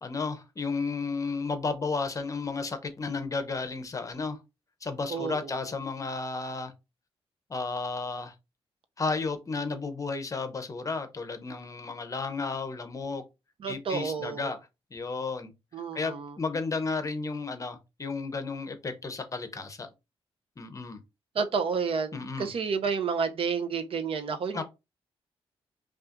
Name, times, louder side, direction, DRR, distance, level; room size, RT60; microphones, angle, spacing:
voice 1, 0.0-4.4 4.8-6.7 7.5-8.3 9.0-13.2 13.7-14.6 14.9-15.5 15.9-19.9 20.6-21.0 22.1-22.5 24.5-24.6, left 4 dB, 30° left, 0.7 m, -33 dB
voice 2, 5.1-5.7 13.6-14.6 15.7-16.3 21.4-24.6, right 5 dB, 60° right, 0.6 m, -30 dB
5.4 x 2.4 x 2.5 m
cardioid pair, 110°, 11 cm